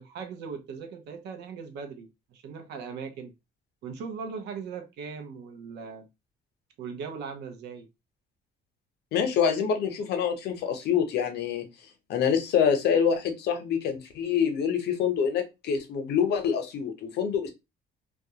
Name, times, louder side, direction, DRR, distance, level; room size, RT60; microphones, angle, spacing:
voice 1, 0.0-3.3 3.8-6.1 6.8-7.9, right 5 dB, 80° right, 0.6 m, -39 dB
voice 2, 9.1-11.7 12.1-17.5, left 7 dB, 75° left, 0.7 m, -26 dB
2.4 x 2.1 x 2.8 m
cardioid pair, 145°, 17 cm